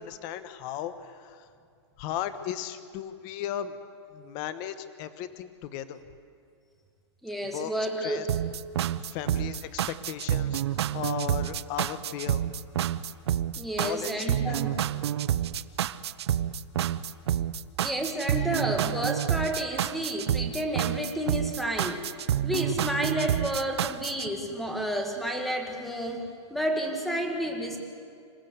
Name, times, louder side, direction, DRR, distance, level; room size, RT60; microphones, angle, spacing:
voice 1, 0.0-1.5 2.0-3.8 4.1-6.0 7.5-7.7 8.0-8.3 9.0-12.4 13.8-14.6, left 10 dB, 25° left, 12 dB, 0.9 m, -36 dB
voice 2, 7.2-8.3 13.6-14.8 17.8-22.1 22.4-26.2 26.5-27.8, right 1 dB, ahead, 3 dB, 1.6 m, -30 dB
sound 1, 8.3-24.3, right 10 dB, 65° right, 0.7 m, -28 dB
26.5 x 15.0 x 8.0 m, 2.3 s
hypercardioid pair, 170°, 15 cm